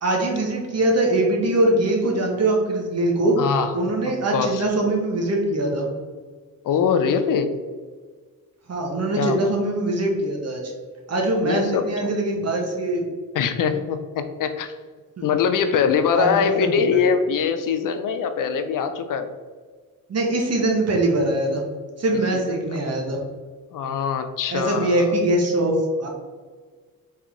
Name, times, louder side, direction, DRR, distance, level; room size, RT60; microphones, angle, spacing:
voice 1, 0.0-3.4 3.7-5.9 8.7-10.6 11.1-13.0 15.2-15.3 16.1-16.5 20.1-21.6 22.0-23.2 24.5-25.7 26.0-26.1, right 2 dB, 40° right, 0 dB, 1.1 m, -22 dB
voice 2, 3.4-3.8 4.3-4.6 6.6-7.5 9.2-9.5 11.4-12.1 13.3-14.7 15.2-19.3 22.3-22.4 23.7-25.1, left 6 dB, 60° left, 9 dB, 0.5 m, -23 dB
3.7 x 3.3 x 3.6 m, 1.5 s
cardioid pair, 85°, 37 cm